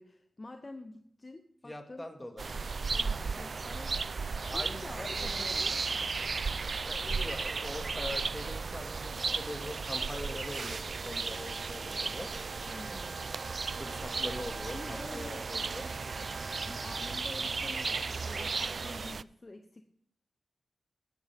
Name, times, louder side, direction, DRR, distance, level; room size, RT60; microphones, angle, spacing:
voice 1, 0.0-2.1 3.0-3.9 4.5-6.0 7.1-7.2 12.7-13.2 14.7-15.4 16.6-19.8, left 2 dB, 35° left, 6 dB, 0.9 m, -47 dB
voice 2, 1.6-2.6 4.5-5.1 5.4-5.6 6.6-12.3 13.8-15.9, left 1 dB, 15° left, 4 dB, 2.2 m, -43 dB
sound 1, 2.4-19.2, right 4 dB, 55° right, 0.3 m, -35 dB
Wind instrument woodwind instrument, 11.3-17.3, right 3 dB, 35° right, 1.1 m, -49 dB
18.5 x 9.0 x 3.6 m, 0.69 s
cardioid pair, 50°, 0 cm